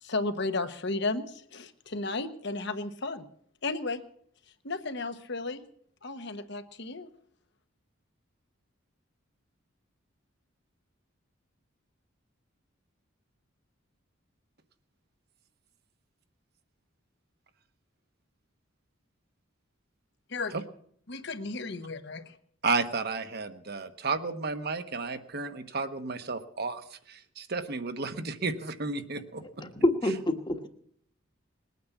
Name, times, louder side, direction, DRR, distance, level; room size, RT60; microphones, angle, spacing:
voice 1, 0.0-3.2 3.6-4.0 4.6-5.6 6.0-7.1 20.3-20.5 21.1-22.4, left 3 dB, 55° left, 8 dB, 1.2 m, -34 dB
voice 2, 22.6-29.4, right 3 dB, 50° right, 8 dB, 1.2 m, -32 dB
voice 3, 29.6-30.7, left 1 dB, 20° left, 7 dB, 1.3 m, -27 dB
20.5 x 9.5 x 7.2 m, 0.64 s
head